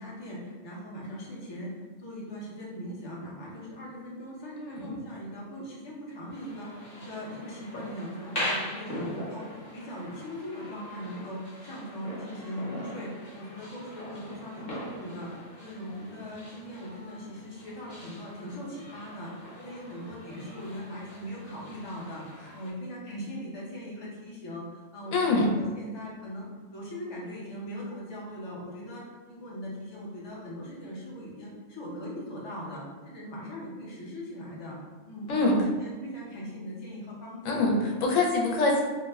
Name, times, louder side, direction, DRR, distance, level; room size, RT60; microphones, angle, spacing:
voice 1, 0.0-1.7 2.0-9.4 9.7-22.2 22.5-29.0 29.3-34.8 35.0-37.6, equal, 30° left, -5 dB, 0.5 m, -40 dB
voice 2, 4.6-4.9 25.1-25.5 35.3-35.5 37.4-38.8, left 3 dB, 85° left, -1 dB, 1.0 m, -24 dB
sound 1, 6.3-22.7, equal, 50° left, 0.9 m, -41 dB
2.8 x 2.0 x 3.4 m, 1.3 s
omnidirectional pair, 1.3 m